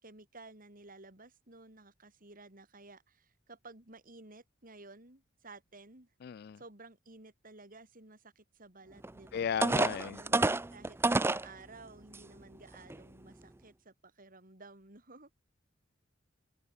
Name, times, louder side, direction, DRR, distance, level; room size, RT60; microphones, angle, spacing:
voice 1, 0.0-6.1 6.6-11.0 11.3-15.4, right 3 dB, 45° right, 5.4 m, -54 dB
voice 2, 6.2-6.6 9.3-10.2, left 8 dB, 55° left, 0.3 m, -35 dB
sound 1, 9.0-9.1 9.6-11.5 12.1-12.2 12.7-13.0, right 2 dB, 10° right, 0.5 m, -28 dB
open air
head